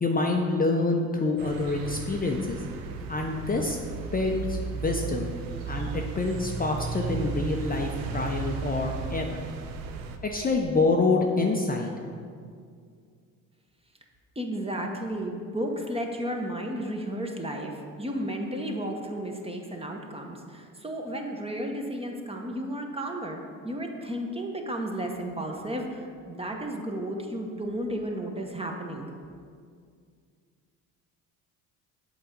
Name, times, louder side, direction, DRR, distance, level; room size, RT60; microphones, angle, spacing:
voice 1, 0.0-2.6 3.1-3.8 4.1-5.3 5.7-9.4 10.2-11.9, left 3 dB, 20° left, 1 dB, 0.7 m, -26 dB
sound 1, 1.4-10.2, right 5 dB, 80° right, 0.7 m, -35 dB
voice 2, 14.3-29.1, right 1 dB, 15° right, 2 dB, 1.0 m, -33 dB
7.8 x 3.8 x 5.2 m, 2.1 s
hypercardioid pair, 65°, 42 cm